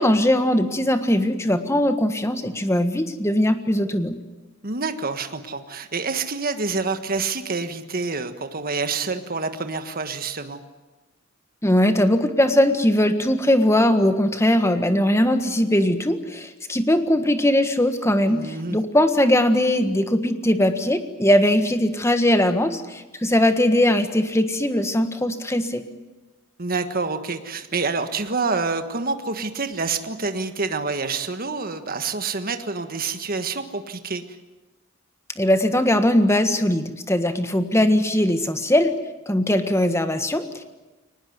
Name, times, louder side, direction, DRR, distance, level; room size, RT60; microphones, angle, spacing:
voice 1, 0.0-4.2 11.6-25.8 35.4-38.9 39.3-40.6, left 1 dB, 15° left, 8 dB, 1.5 m, -20 dB
voice 2, 4.6-10.6 18.3-18.8 26.6-34.4, right 4 dB, 45° right, 8 dB, 1.5 m, -27 dB
23.5 x 19.5 x 9.5 m, 1.1 s
head